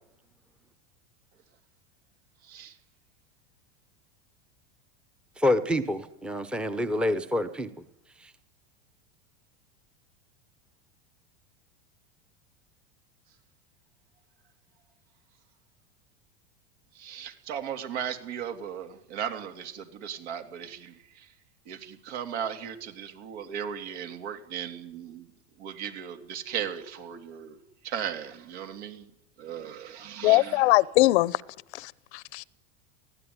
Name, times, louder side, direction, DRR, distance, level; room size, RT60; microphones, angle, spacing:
voice 1, 5.4-7.7 8.2-8.3, left 1 dB, 5° right, 0.8 m, -27 dB
voice 2, 16.9-21.3 21.7-25.3 25.6-27.6 27.8-29.1 29.4-30.5, right 8 dB, 70° right, 3.2 m, -36 dB
voice 3, 30.2-31.4 31.7-32.4, left 19 dB, 70° left, 0.8 m, -22 dB
22.0 x 16.0 x 9.7 m
supercardioid pair, 150°, 34 cm